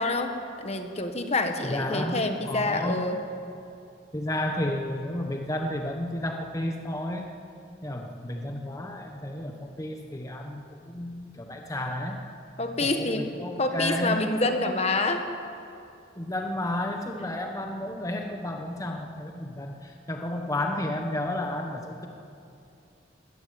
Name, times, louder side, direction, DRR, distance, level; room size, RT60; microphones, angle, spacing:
voice 1, 0.0-3.2 12.6-13.3 13.6-15.2, left 2 dB, 35° left, 6 dB, 1.4 m, -27 dB
voice 2, 1.6-3.0 4.1-7.3 7.8-12.2 12.8-14.3 16.2-22.1, left 1 dB, 20° left, 3 dB, 1.3 m, -32 dB
21.0 x 15.0 x 9.4 m, 2.6 s
head